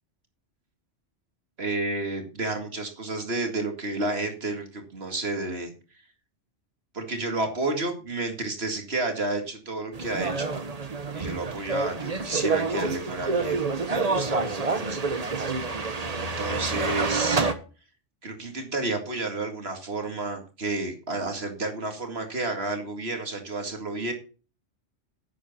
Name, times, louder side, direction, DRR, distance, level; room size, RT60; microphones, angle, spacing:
voice 1, 1.6-5.7 6.9-10.5 11.1-15.0 16.2-17.5 18.2-24.1, right 2 dB, 60° right, 5 dB, 2.3 m, -31 dB
sound 1, 9.9-17.5, right 4 dB, 35° right, 1.1 m, -28 dB
11.0 x 8.4 x 4.3 m, 0.35 s
omnidirectional pair, 1.2 m